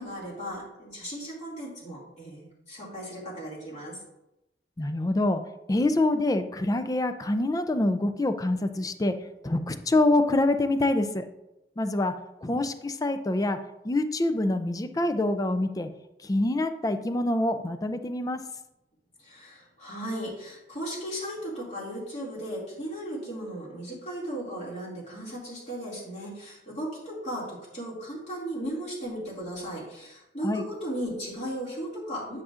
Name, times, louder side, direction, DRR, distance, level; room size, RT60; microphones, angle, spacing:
voice 1, 0.0-4.0 19.2-32.4, equal, 40° left, -6 dB, 2.3 m, -36 dB
voice 2, 4.8-5.4 5.7-9.1 9.4-11.3 11.8-12.1 12.4-13.6 13.8-15.9 16.2-18.4 30.4-30.6, left 2 dB, 20° left, 9 dB, 0.4 m, -25 dB
9.7 x 6.2 x 2.5 m, 0.93 s
head